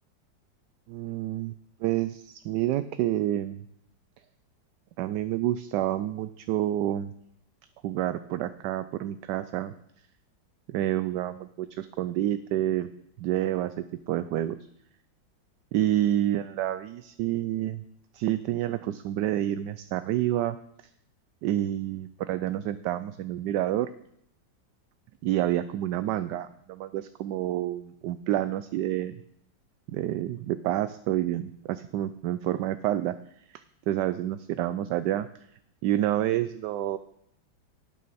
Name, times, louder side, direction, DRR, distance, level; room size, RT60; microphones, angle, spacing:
voice 1, 0.9-1.5 1.8-3.6 5.0-7.1 7.8-9.7 10.7-12.9 13.2-14.5 15.7-17.8 18.1-20.6 21.4-23.9 25.2-29.1 29.9-33.1 33.9-35.3 35.8-37.0, right 13 dB, 75° right, 13 dB, 1.1 m, -28 dB
12.0 x 9.4 x 4.1 m, 0.74 s
omnidirectional pair, 2.1 m